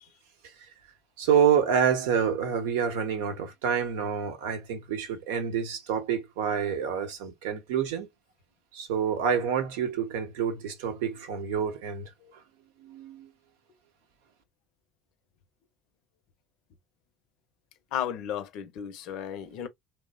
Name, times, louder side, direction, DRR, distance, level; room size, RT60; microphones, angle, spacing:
voice 1, 1.2-8.1 8.7-12.1 12.8-13.3, right 7 dB, 85° right, 0.7 m, -27 dB
voice 2, 17.9-19.7, left 9 dB, 70° left, 0.5 m, -34 dB
3.0 x 2.0 x 2.2 m
supercardioid pair, 85°, 0 cm